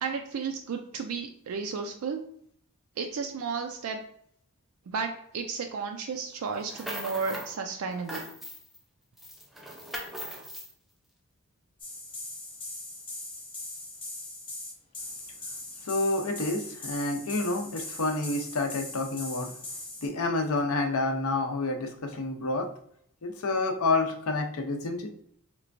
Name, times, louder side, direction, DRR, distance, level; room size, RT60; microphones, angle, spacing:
voice 1, 0.0-2.2 3.0-4.0 4.9-8.2, right 5 dB, 70° right, 4 dB, 0.4 m, -33 dB
sound 1, 6.5-7.5 7.9-8.8 9.2-10.7, equal, ahead, 0.4 m, -39 dB
sound 2, 11.8-20.1, left 2 dB, 25° left, 1.0 m, -40 dB
voice 2, 15.8-19.5 20.0-22.7 23.2-25.1, left 2 dB, 70° left, 4 dB, 0.6 m, -29 dB
3.3 x 3.0 x 2.5 m, 0.68 s
head